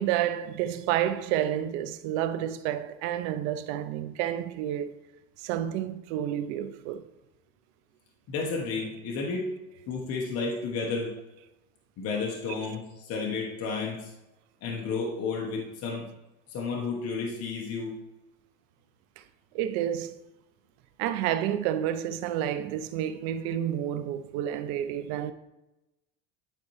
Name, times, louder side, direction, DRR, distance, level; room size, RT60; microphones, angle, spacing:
voice 1, 0.0-5.0 5.4-7.0 19.2-19.3 19.5-20.1 21.0-25.3, right 11 dB, 75° right, 0.6 m, -30 dB
voice 2, 8.3-9.5 9.9-11.1 12.0-14.1 14.6-16.1 16.5-18.0, left 4 dB, 45° left, 1.0 m, -32 dB
9.9 x 4.2 x 3.1 m
cardioid pair, 150°, 34 cm